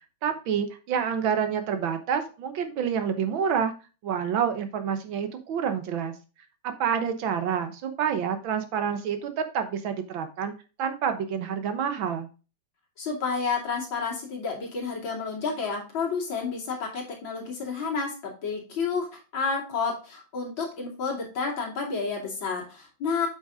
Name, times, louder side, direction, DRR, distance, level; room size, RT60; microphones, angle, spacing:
voice 1, 0.2-3.7 4.0-6.1 6.6-10.5 10.8-12.3, right 7 dB, 85° right, 8 dB, 1.9 m, -28 dB
voice 2, 13.0-23.3, left 5 dB, 85° left, -2 dB, 3.3 m, -30 dB
8.1 x 5.6 x 3.7 m, 0.32 s
omnidirectional pair, 2.1 m